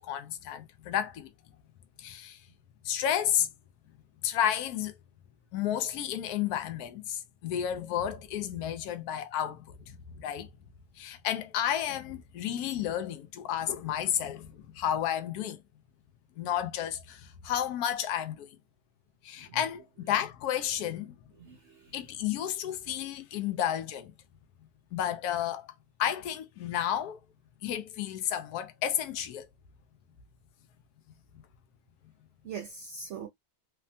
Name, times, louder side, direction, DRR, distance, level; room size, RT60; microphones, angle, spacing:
voice 1, 0.0-1.3 2.0-2.4 2.8-3.5 4.2-4.9 5.5-10.5 11.0-15.6 16.4-18.5 19.2-21.2 21.9-24.1 24.9-25.7 26.0-27.2 27.6-29.5, left 10 dB, 85° left, 1.1 m, -32 dB
voice 2, 21.4-22.0 32.4-33.3, right 6 dB, 60° right, 0.8 m, -42 dB
3.3 x 2.1 x 2.6 m
omnidirectional pair, 1.6 m